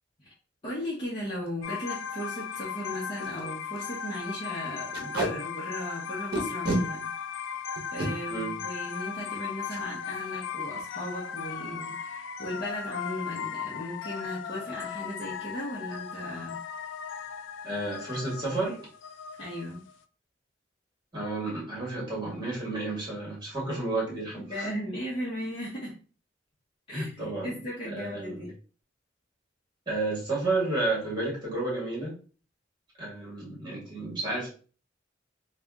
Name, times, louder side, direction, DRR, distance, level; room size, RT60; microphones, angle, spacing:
voice 1, 0.6-7.1 7.9-16.6 19.4-19.8 24.1-26.0 26.9-28.5, equal, 30° left, -8 dB, 1.0 m, -37 dB
Packing tape duct tape, 1.3-1.5 1.9-2.0 2.2-2.4 2.9-3.0 3.2-3.4 3.7-3.9 4.9-5.3 6.3-6.8 7.8-8.1 9.6-9.8 10.2-10.4 10.6-11.0, right 1 dB, 55° right, 1.0 m, -29 dB
sound 1, 1.6-20.0, left 7 dB, 85° left, 0.3 m, -37 dB
voice 2, 8.3-8.6 17.6-18.9 21.1-24.7 26.9-27.5 27.8-28.5 29.9-32.1 33.0-34.5, right 2 dB, 25° right, -4 dB, 1.9 m, -31 dB
3.4 x 2.4 x 3.5 m, 0.38 s
head